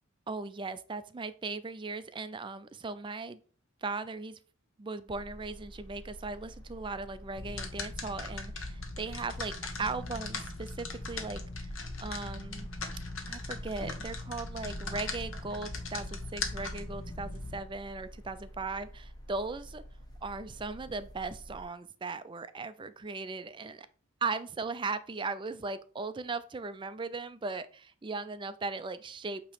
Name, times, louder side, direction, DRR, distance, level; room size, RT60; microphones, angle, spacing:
voice 1, 0.3-3.4 3.8-4.4 4.8-11.7 12.0-12.7 13.3-19.8 20.2-23.9 24.2-29.4, right 3 dB, 25° right, 0.4 m, -38 dB
sound 1, 5.1-21.6, equal, 20° left, 1.1 m, -49 dB
sound 2, 7.4-17.6, left 3 dB, 70° left, 1.1 m, -39 dB
8.4 x 3.0 x 4.9 m
head